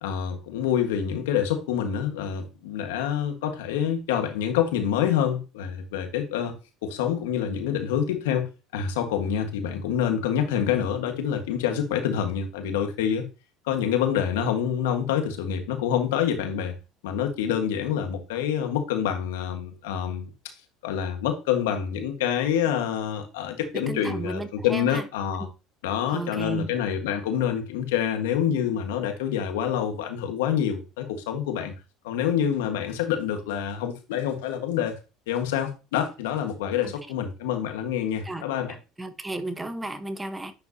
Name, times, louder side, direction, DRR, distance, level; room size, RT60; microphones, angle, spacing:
voice 1, 0.0-6.5 6.8-8.5 8.7-13.3 13.6-16.7 17.0-20.2 20.8-25.5 25.8-31.7 32.0-34.9 35.3-38.8, left 9 dB, 90° left, 1.5 m, -27 dB
voice 2, 23.9-25.0 26.1-26.7 38.2-38.4 39.0-40.5, right 2 dB, 15° right, 1.0 m, -33 dB
10.5 x 4.7 x 2.8 m
supercardioid pair, 90°, 0 cm